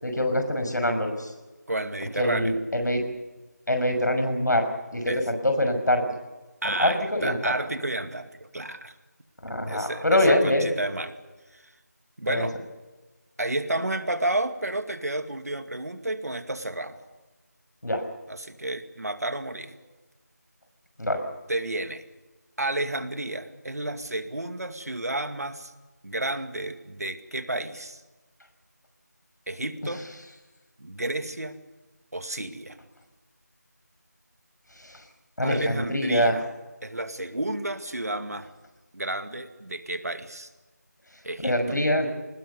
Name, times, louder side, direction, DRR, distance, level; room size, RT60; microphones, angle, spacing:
voice 1, 0.0-1.3 2.2-3.0 3.7-6.0 6.6-7.5 9.4-10.7 12.3-12.5 17.8-18.0 21.0-21.2 34.8-35.0 35.4-36.3 41.4-42.1, left 1 dB, 85° left, 6 dB, 6.3 m, -24 dB
voice 2, 1.7-2.5 5.1-5.2 6.6-9.0 9.7-11.1 11.5-11.7 12.2-12.6 13.4-17.0 18.3-19.7 21.5-22.0 22.6-25.7 26.0-28.0 29.5-30.0 30.8-31.6 32.1-32.8 35.4-36.4 36.8-38.5 38.9-40.5 41.2-41.8, right 1 dB, 60° right, 9 dB, 2.2 m, -31 dB
22.5 x 20.0 x 8.2 m, 1.2 s
figure-of-eight pair, 175°, 9 cm